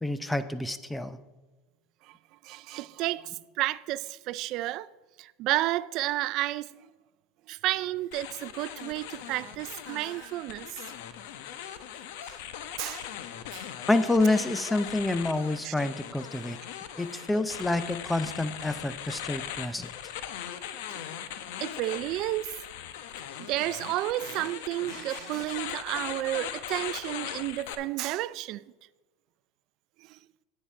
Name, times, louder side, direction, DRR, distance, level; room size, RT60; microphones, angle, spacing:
voice 1, 0.0-1.2 13.9-16.6 17.0-19.9, left 2 dB, 5° left, 0.6 m, -28 dB
voice 2, 2.4-4.9 5.2-6.7 7.5-10.8 12.3-12.4 12.8-13.1 13.5-13.7 15.6-15.7 17.1-17.2 20.9-21.0 21.6-22.6 23.5-28.6 30.1-30.2, right 16 dB, 50° right, 0.4 m, -31 dB
sound 1, 8.1-27.7, left 10 dB, 70° left, 0.9 m, -40 dB
9.8 x 8.5 x 4.5 m
supercardioid pair, 125°, 0 cm